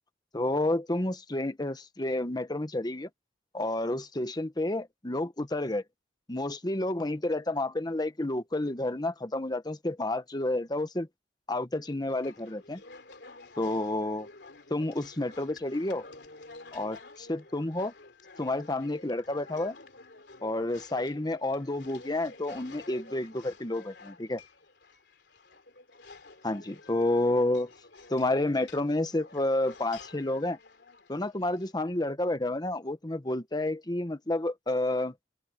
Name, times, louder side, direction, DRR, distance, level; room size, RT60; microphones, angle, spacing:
voice 1, 0.3-3.1 3.5-5.8 6.3-11.1 11.5-12.8 13.6-14.3 14.7-16.0 16.7-17.9 18.4-19.7 20.4-24.4 26.4-27.7 28.1-30.6 31.1-35.1, left 1 dB, 25° left, 1.2 m, -30 dB
sound 1, 12.1-31.7, left 3 dB, 70° left, 3.4 m, -51 dB
open air
head